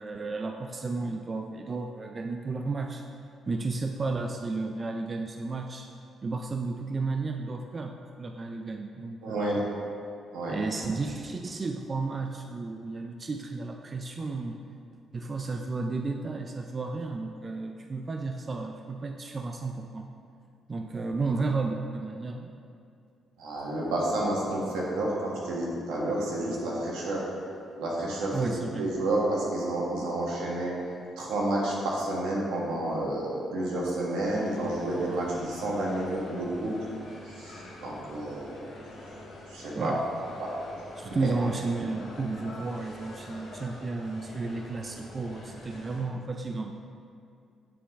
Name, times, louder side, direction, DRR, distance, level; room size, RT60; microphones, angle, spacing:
voice 1, 0.0-3.0 3.5-5.9 6.2-9.5 10.5-14.6 15.1-20.1 20.7-22.6 28.3-28.9 39.8-40.1 41.0-46.9, right 3 dB, 35° right, 4 dB, 0.3 m, -33 dB
voice 2, 9.2-9.6 10.3-10.6 23.4-27.2 27.8-28.5 28.8-30.7 31.2-36.7 37.3-38.7 39.5-39.9 40.4-40.5 41.1-41.3, right 1 dB, 90° right, -4 dB, 1.4 m, -30 dB
sound 1, 34.2-46.0, left 1 dB, 75° left, 1.3 m, -45 dB
8.5 x 3.8 x 3.5 m, 2.5 s
cardioid pair, 90°, 0 cm